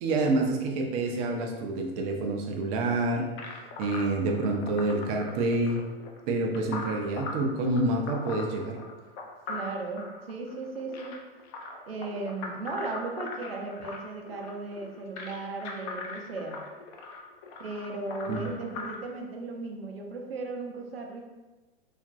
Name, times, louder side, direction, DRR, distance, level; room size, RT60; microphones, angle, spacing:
voice 1, 0.0-3.3 3.8-5.9 6.3-8.8 18.3-18.4, right 2 dB, 35° right, 2 dB, 0.4 m, -27 dB
sound 1, 3.4-18.9, left 3 dB, 30° left, 0.4 m, -40 dB
voice 2, 9.5-11.2 11.9-16.6 17.6-21.2, right 3 dB, 80° right, 2 dB, 0.6 m, -36 dB
2.9 x 2.4 x 2.4 m, 1.2 s
figure-of-eight pair, 90°, 30 cm